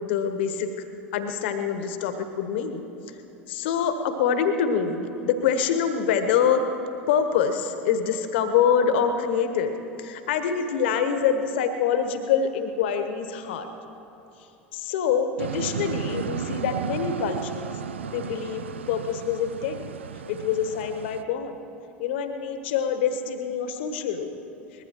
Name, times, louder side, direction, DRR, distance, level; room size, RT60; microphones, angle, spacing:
voice 1, 0.0-0.7 1.1-2.8 3.5-6.6 7.1-9.7 10.0-13.7 14.7-17.7 18.1-19.9 20.3-21.5 22.0-24.4, left 7 dB, 65° left, 8 dB, 1.3 m, -25 dB
sound 1, 15.4-21.2, right 7 dB, 80° right, 0.4 m, -34 dB
23.0 x 20.0 x 3.1 m, 2.9 s
figure-of-eight pair, 75°, 6 cm